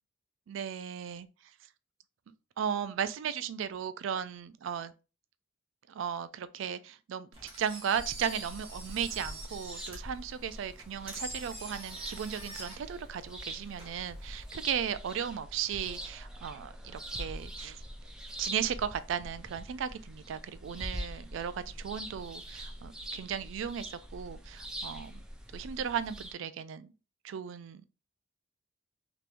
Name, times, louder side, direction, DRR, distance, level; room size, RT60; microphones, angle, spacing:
voice 1, 0.5-1.3 2.6-4.9 5.9-7.3 7.6-17.8 18.4-25.2 25.5-26.9 27.2-27.8, right 8 dB, 70° right, 0.3 m, -36 dB
Engine, 7.3-14.6, right 2 dB, 30° right, 1.4 m, -46 dB
sound 1, 7.9-26.3, equal, 5° right, 0.5 m, -44 dB
3.4 x 3.0 x 2.5 m
head